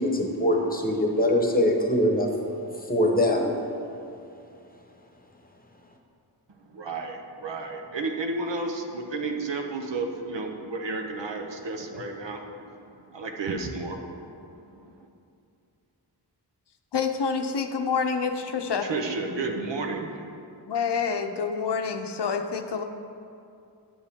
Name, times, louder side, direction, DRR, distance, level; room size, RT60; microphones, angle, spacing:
voice 1, 0.0-2.3 2.9-3.5, left 1 dB, 20° left, 2 dB, 1.0 m, -23 dB
voice 2, 6.6-15.1 18.8-20.4, right 3 dB, 85° right, 3 dB, 0.9 m, -32 dB
voice 3, 16.9-18.9 20.7-22.8, left 5 dB, 70° left, 6 dB, 0.7 m, -27 dB
10.5 x 7.3 x 3.6 m, 2.6 s
wide cardioid pair, 95°, 42 cm